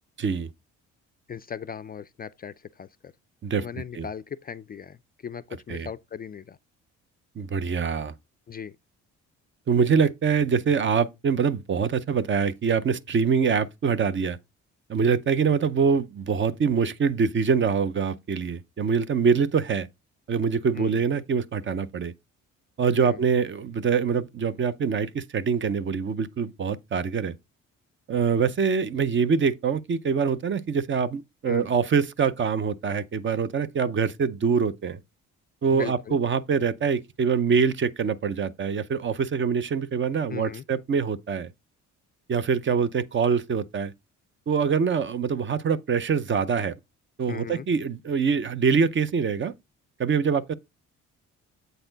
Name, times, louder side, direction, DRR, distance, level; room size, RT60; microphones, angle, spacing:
voice 1, 0.2-0.5 3.4-3.6 3.9-4.1 5.7-5.9 7.4-8.1 9.7-14.4 14.9-19.9 20.3-22.1 22.8-27.4 28.1-35.0 35.6-41.5 42.3-43.9 44.5-46.7 47.2-49.5 50.0-50.5, right 6 dB, 40° right, 0.6 m, -24 dB
voice 2, 1.3-3.1 3.6-5.0 5.2-6.6 8.5-8.8 20.8-21.0 23.0-23.2 31.5-31.7 35.7-36.2 40.3-40.6 47.3-47.7, left 7 dB, 30° left, 0.4 m, -37 dB
7.9 x 4.2 x 3.9 m
cardioid pair, 90°, 30 cm